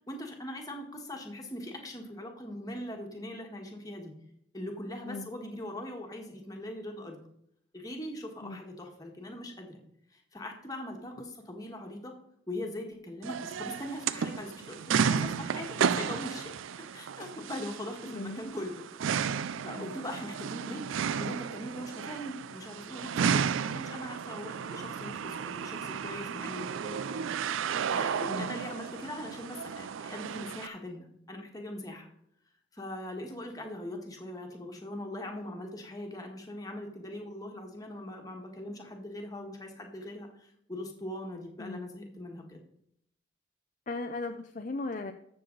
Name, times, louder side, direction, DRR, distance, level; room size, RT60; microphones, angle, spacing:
voice 1, 0.1-4.1 4.5-7.2 7.7-9.8 10.1-12.1 12.5-16.5 16.9-18.8 19.6-20.8 21.2-27.4 27.9-32.1 32.7-42.6, left 1 dB, 20° left, 2 dB, 1.5 m, -41 dB
sound 1, 13.2-30.7, right 7 dB, 80° right, 0.4 m, -33 dB
voice 2, 18.1-18.4 19.8-19.9 28.3-28.5 41.6-41.8 43.9-45.1, left 3 dB, 40° left, 6 dB, 0.5 m, -37 dB
13.5 x 6.9 x 3.9 m, 0.72 s
head